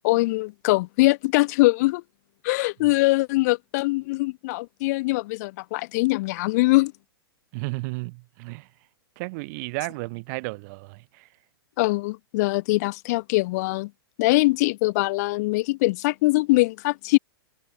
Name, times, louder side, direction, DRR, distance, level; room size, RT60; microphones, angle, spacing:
voice 1, 0.0-2.0 2.4-6.9 11.8-13.9 14.2-17.2, left 21 dB, 40° left, 0.5 m, -22 dB
voice 2, 7.5-8.7 9.2-11.3, right 27 dB, 45° right, 3.3 m, -33 dB
figure-of-eight pair, 105°, 13 cm